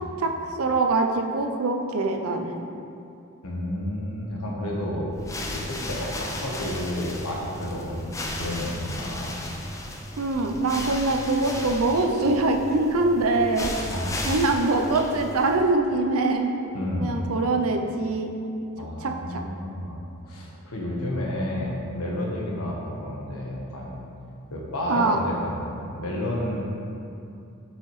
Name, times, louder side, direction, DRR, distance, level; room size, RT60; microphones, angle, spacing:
voice 1, 0.6-2.6 10.2-13.7 14.2-16.5 16.9-18.3 19.0-19.4 24.9-25.2, right 2 dB, 75° right, 4 dB, 0.5 m, -23 dB
voice 2, 3.4-5.1 5.5-9.4 13.9-14.2 16.7-17.3 18.8-24.0 24.5-26.6, left 1 dB, 80° left, -3 dB, 1.2 m, -31 dB
sound 1, 5.1-15.8, left 1 dB, 15° left, 0.3 m, -35 dB
6.6 x 5.6 x 3.1 m, 2.6 s
head